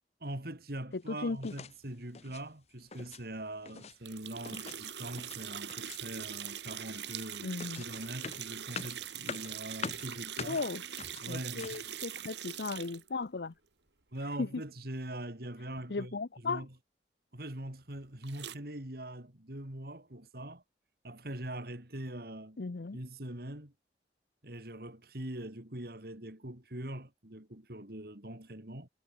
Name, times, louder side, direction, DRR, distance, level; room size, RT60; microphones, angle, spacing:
voice 1, 0.2-7.5 7.8-10.6 11.2-11.9 14.1-16.2 16.4-16.7 17.3-20.6 21.0-22.6 22.9-23.7 24.4-28.9, right 1 dB, 60° right, 3.4 m, -42 dB
voice 2, 0.9-1.5 7.4-7.8 10.4-10.8 11.3-13.5 14.4-14.5 15.9-16.7 22.6-23.0, left 3 dB, 70° left, 0.7 m, -36 dB
sound 1, 1.4-1.8 2.1-2.5 2.8-3.2 3.5-4.0 4.4-5.4 5.7-6.2 6.5-11.9, left 5 dB, 40° left, 1.0 m, -45 dB
sound 2, 4.0-13.1 18.2-18.6, right 10 dB, 80° right, 2.4 m, -42 dB
head